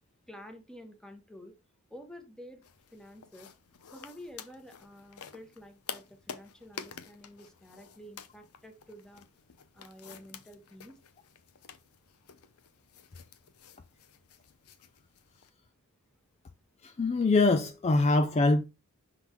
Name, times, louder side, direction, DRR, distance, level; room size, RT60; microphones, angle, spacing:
voice 1, 0.3-1.5 1.9-2.6 2.9-3.5 3.8-9.3 9.7-11.0, equal, 5° left, 1.0 m, -50 dB
sound 1, 2.6-15.5, left 7 dB, 75° left, 0.7 m, -49 dB
voice 2, 16.8-18.6, left 3 dB, 30° left, 0.4 m, -24 dB
5.7 x 3.9 x 4.5 m
head